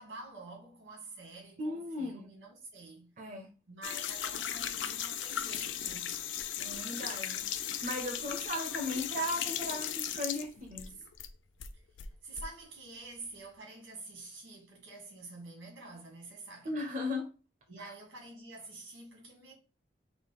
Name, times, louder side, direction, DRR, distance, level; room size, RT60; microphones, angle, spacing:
voice 1, 0.0-3.1 3.7-6.2 12.2-16.7 17.7-19.5, right 2 dB, 90° right, 1.9 m, -48 dB
voice 2, 1.6-2.3 3.2-3.5 6.6-7.4 7.8-10.9 16.6-17.3 17.8-17.9, left 1 dB, 40° right, 0.6 m, -37 dB
sound 1, 3.8-11.3 11.6-12.5, left 10 dB, 85° left, 0.4 m, -37 dB
4.7 x 2.1 x 4.1 m
head